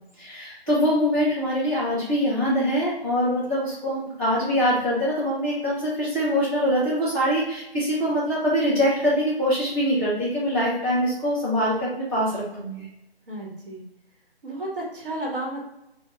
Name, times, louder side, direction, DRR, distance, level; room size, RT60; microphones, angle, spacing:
voice 1, 0.2-12.9, equal, 20° right, -11 dB, 0.5 m, -24 dB
voice 2, 13.3-13.8 14.4-15.6, right 1 dB, 60° right, -2 dB, 1.2 m, -32 dB
3.4 x 2.2 x 2.9 m, 0.88 s
figure-of-eight pair, 170°, 31 cm